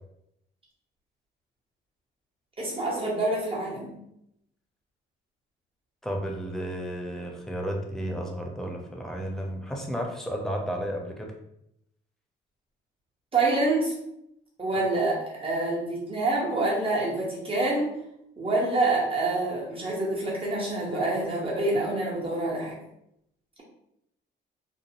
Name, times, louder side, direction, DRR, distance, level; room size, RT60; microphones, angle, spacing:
voice 1, 2.6-3.9 13.3-13.9 14.6-17.9 18.4-22.8, right 2 dB, 25° right, -5 dB, 1.1 m, -26 dB
voice 2, 6.0-11.3, equal, ahead, 0 dB, 0.5 m, -32 dB
2.6 x 2.1 x 2.7 m, 0.78 s
cardioid pair, 90°, 20 cm